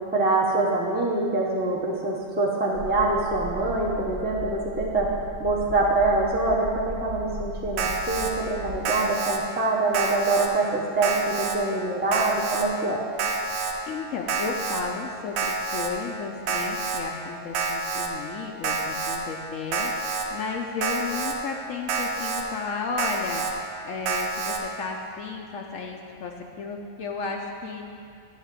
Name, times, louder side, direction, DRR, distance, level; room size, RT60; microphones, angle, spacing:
voice 1, 0.1-5.1 5.4-13.0, right 2 dB, 10° right, -4 dB, 0.8 m, -25 dB
sound 1, 2.7-8.8, equal, 60° right, 1.1 m, -37 dB
Alarm, 7.8-8.3 8.8-9.4 9.9-10.5 11.0-11.6 12.1-12.6 13.2-13.7 14.3-14.8 15.4-15.9 16.5-17.0 17.5-18.1 18.6-19.2 19.7-20.2 20.8-21.3 21.9-22.4 23.0-23.5 24.1-24.6, right 4 dB, 80° right, 1.2 m, -28 dB
voice 2, 13.9-23.4 23.8-27.9, left 5 dB, 70° left, 1 dB, 1.0 m, -33 dB
10.0 x 4.0 x 7.4 m, 2.4 s
omnidirectional pair, 1.4 m